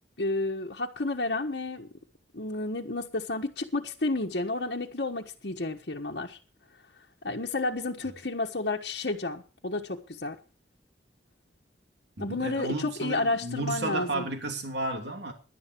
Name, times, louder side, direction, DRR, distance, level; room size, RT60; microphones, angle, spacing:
voice 1, 0.2-1.9 2.3-6.4 7.2-10.4 12.2-14.3, left 2 dB, 65° left, 1.4 m, -31 dB
voice 2, 12.2-15.3, right 2 dB, 70° right, 2.9 m, -33 dB
18.0 x 11.5 x 4.6 m
head